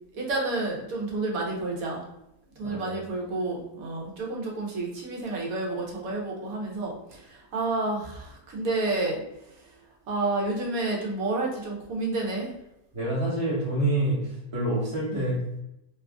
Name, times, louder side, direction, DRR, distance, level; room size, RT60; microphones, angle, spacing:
voice 1, 0.1-2.0 2.6-9.2 10.1-12.5 15.1-15.3, right 2 dB, 75° right, -1 dB, 1.3 m, -30 dB
voice 2, 2.6-3.0 12.9-15.6, right 1 dB, 25° right, -7 dB, 0.8 m, -27 dB
3.0 x 2.5 x 3.5 m, 0.85 s
omnidirectional pair, 1.5 m